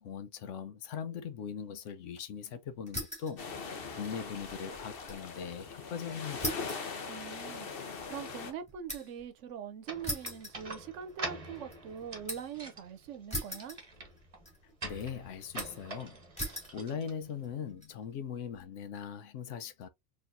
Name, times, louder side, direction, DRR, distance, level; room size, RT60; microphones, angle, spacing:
voice 1, 0.0-6.7 14.8-16.2 16.7-19.9, left 7 dB, 85° left, 1.0 m, -40 dB
sound 1, 2.9-3.4 3.7-5.3 5.6-5.7 6.4-9.3 10.0-11.2 11.5-12.6 13.3-14.2 14.4-15.0 15.6-15.9 16.4-16.8 17.4-17.9, equal, 5° left, 2.2 m, -40 dB
sound 2, 3.4-8.5, left 5 dB, 55° left, 1.0 m, -41 dB
voice 2, 7.1-13.8, right 8 dB, 85° right, 1.0 m, -43 dB
sound 3, 9.8-17.7, right 2 dB, 30° right, 1.0 m, -45 dB
4.2 x 3.1 x 2.5 m
omnidirectional pair, 1.2 m